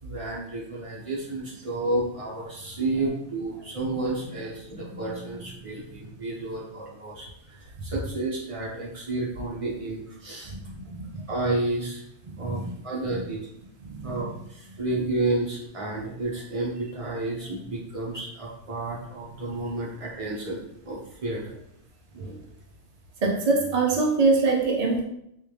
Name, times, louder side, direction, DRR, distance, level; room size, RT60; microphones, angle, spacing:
voice 1, 0.0-10.5 11.3-12.0 12.4-13.4 14.0-21.6, right 2 dB, 30° right, -5 dB, 0.9 m, -31 dB
voice 2, 10.4-11.2 12.3-12.7 13.1-13.2 13.8-14.4 22.1-22.4 23.2-25.0, right 3 dB, 85° right, -1 dB, 0.3 m, -25 dB
3.4 x 2.7 x 3.1 m, 0.77 s
omnidirectional pair, 1.4 m